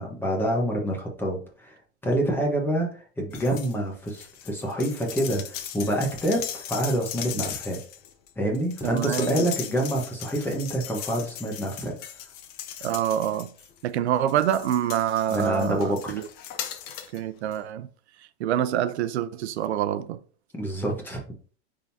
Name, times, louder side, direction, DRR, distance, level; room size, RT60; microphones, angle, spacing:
voice 1, 0.0-7.8 8.4-11.9 15.3-16.1 20.6-21.2, right 1 dB, 5° left, 1.2 m, -27 dB
sound 1, 3.3-3.8 4.1-13.8 14.3-17.2 17.5-17.6, left 10 dB, 30° left, 0.6 m, -38 dB
voice 2, 8.8-9.4 12.8-13.5 13.8-16.3 17.1-17.9 18.4-20.2, right 11 dB, 90° right, 0.7 m, -26 dB
9.1 x 3.8 x 2.8 m
supercardioid pair, 160°, 32 cm